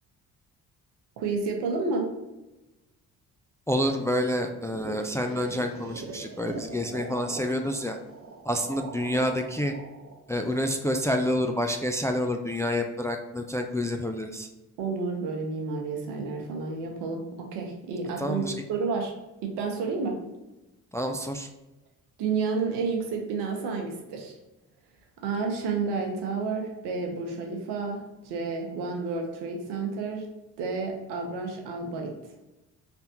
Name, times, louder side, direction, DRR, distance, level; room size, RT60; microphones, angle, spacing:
voice 1, 1.2-2.1 14.8-18.4 18.7-19.1 19.4-20.2 22.2-24.4 25.2-30.3 30.6-32.1, right 4 dB, 75° right, 2 dB, 0.9 m, -30 dB
voice 2, 3.7-8.0 8.5-9.7 10.3-14.5 18.2-18.5 20.9-21.5, left 1 dB, 10° left, 4 dB, 0.3 m, -28 dB
sound 1, 4.4-11.3, right 3 dB, 35° right, 0.8 m, -42 dB
4.3 x 3.4 x 2.8 m, 1.0 s
hypercardioid pair, 45°, 41 cm